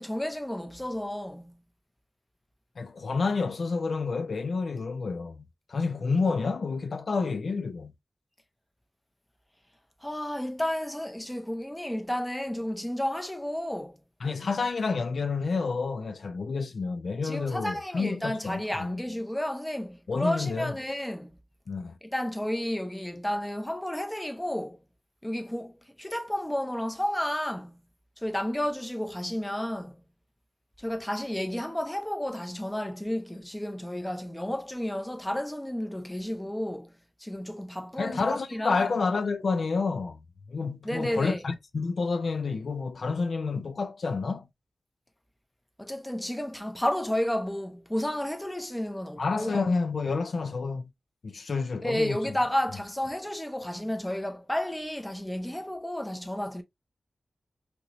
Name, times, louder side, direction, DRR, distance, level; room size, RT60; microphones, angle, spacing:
voice 1, 0.0-1.5 10.0-14.0 17.2-21.4 22.0-24.8 25.2-27.8 28.2-30.0 30.8-36.9 37.2-38.9 40.8-41.4 45.8-49.7 51.8-56.6, left 1 dB, 10° left, 0.5 m, -32 dB
voice 2, 2.8-7.9 14.2-19.0 20.1-20.7 21.7-22.0 38.0-40.2 40.5-44.5 49.2-50.9 51.2-52.2, left 4 dB, 70° left, 0.4 m, -29 dB
3.0 x 2.8 x 2.5 m
wide cardioid pair, 115°, 0 cm